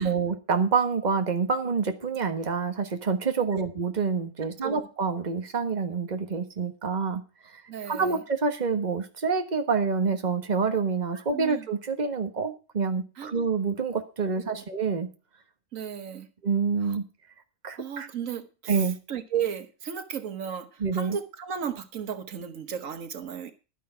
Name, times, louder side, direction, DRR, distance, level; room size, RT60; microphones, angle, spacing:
voice 1, 0.0-7.2 7.5-7.6 7.9-15.1 16.4-17.0 17.6-18.1 18.7-19.0 20.8-21.2, right 5 dB, 35° right, 7 dB, 1.5 m, -27 dB
voice 2, 7.7-8.2 11.3-11.7 13.2-13.3 14.5-14.6 15.7-16.3 16.8-17.0 17.7-23.5, right 8 dB, 85° right, 10 dB, 1.6 m, -34 dB
11.5 x 10.0 x 4.5 m, 0.33 s
omnidirectional pair, 1.3 m